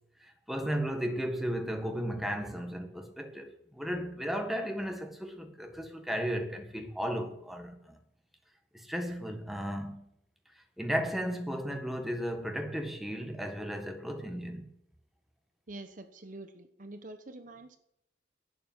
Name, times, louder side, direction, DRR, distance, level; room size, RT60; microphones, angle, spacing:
voice 1, 0.2-8.0 8.7-10.0 10.8-14.7, equal, ahead, 1.6 m, -35 dB
voice 2, 15.7-17.8, right 2 dB, 45° right, 1.0 m, -46 dB
12.0 x 8.7 x 7.4 m
head